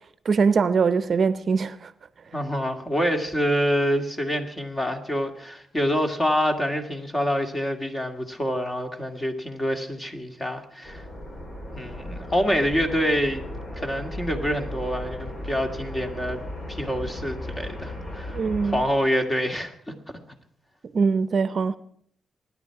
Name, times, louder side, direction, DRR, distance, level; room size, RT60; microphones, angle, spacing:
voice 1, 0.2-1.9 18.3-18.8 20.8-21.8, right 5 dB, 50° right, 0.7 m, -22 dB
voice 2, 2.3-11.1 11.7-13.4 13.8-16.4 16.7-18.4 18.6-19.7, equal, 20° left, 2.4 m, -26 dB
sound 1, 10.8-18.8, left 1 dB, 45° left, 5.1 m, -36 dB
25.0 x 10.5 x 4.8 m
cardioid pair, 90°, 0 cm